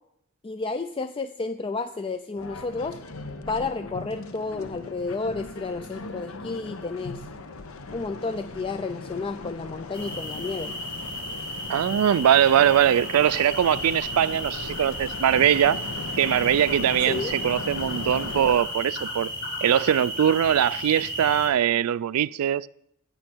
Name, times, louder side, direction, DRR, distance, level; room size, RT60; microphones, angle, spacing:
voice 1, 0.4-3.0 3.5-7.2 7.9-10.7 17.1-17.3, left 3 dB, 25° left, 0.3 m, -31 dB
sound 1, 2.4-18.6, left 3 dB, 75° left, 0.8 m, -38 dB
sound 2, 9.9-21.5, equal, 55° left, 4.0 m, -34 dB
voice 2, 11.7-15.8 16.2-19.3 19.6-22.7, right 10 dB, 90° right, 0.3 m, -21 dB
18.0 x 6.5 x 4.5 m
head